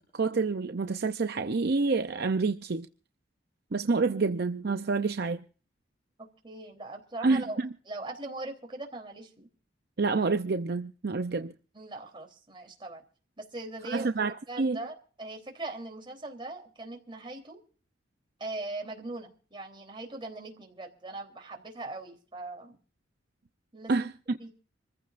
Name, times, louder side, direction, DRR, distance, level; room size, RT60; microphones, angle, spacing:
voice 1, 0.1-2.9 3.7-5.4 7.2-7.7 10.0-11.5 13.9-14.8 23.9-24.4, right 4 dB, 60° right, 0.6 m, -28 dB
voice 2, 6.2-7.6 7.9-9.5 11.7-13.0 13.4-14.1 14.5-17.6 18.4-22.8 23.7-24.1 24.4-24.5, right 2 dB, 25° right, 3.4 m, -40 dB
26.5 x 15.0 x 2.5 m
head